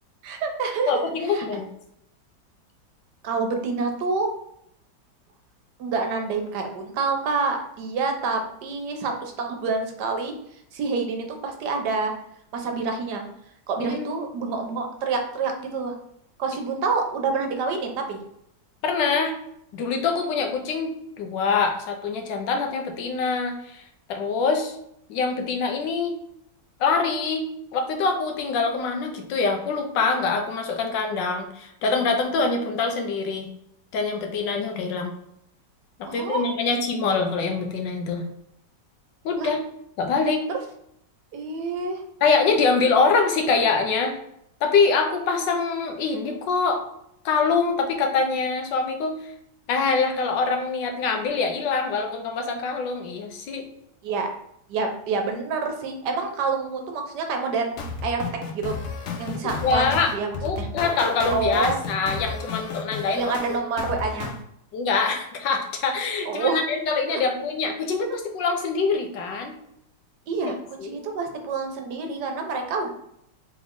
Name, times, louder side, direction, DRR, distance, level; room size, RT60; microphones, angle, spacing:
voice 1, 0.2-1.0 1.3-1.4 3.2-4.3 5.8-10.3 10.7-12.1 12.5-13.2 13.7-15.9 16.4-18.2 36.1-36.4 39.4-39.5 40.5-40.6 41.3-42.0 54.0-54.3 54.7-57.7 58.0-58.2 58.5-58.8 59.2-60.7 61.3-61.8 63.1-64.3 66.3-66.6 67.1-67.2 70.3-72.9, right 4 dB, 70° right, 4 dB, 1.2 m, -27 dB
voice 2, 0.9-1.6 13.8-14.3 18.8-19.3 19.7-23.8 24.1-24.8 25.1-26.2 26.8-27.5 27.7-33.5 33.9-35.1 36.0-38.2 39.2-39.6 40.0-40.4 42.2-44.1 44.6-46.8 47.2-49.3 49.7-53.7 59.6-60.1 60.4-63.3 64.7-69.5 70.4-71.0, left 4 dB, 85° left, 4 dB, 1.4 m, -24 dB
sound 1, 57.8-64.4, left 4 dB, 60° left, 0.9 m, -32 dB
3.6 x 3.2 x 3.6 m, 0.75 s
omnidirectional pair, 1.9 m